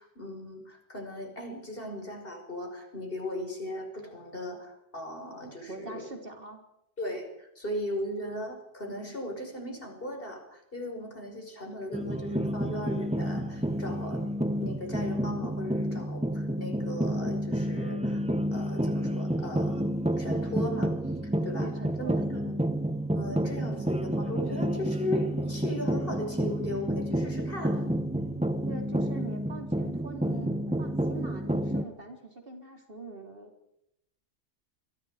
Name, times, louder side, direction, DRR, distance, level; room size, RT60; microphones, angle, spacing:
voice 1, 0.0-6.1 7.0-14.3 14.6-18.2 18.5-19.9 20.2-21.0 21.2-21.7 22.0-22.1 23.1-27.9, left 1 dB, 50° left, 3 dB, 5.9 m, -37 dB
voice 2, 5.7-6.6 21.6-22.6 28.7-33.5, right 2 dB, 50° right, 3 dB, 3.9 m, -43 dB
sound 1, 11.9-31.8, right 1 dB, 5° right, 1.0 m, -30 dB
29.0 x 23.0 x 5.1 m, 0.82 s
omnidirectional pair, 1.2 m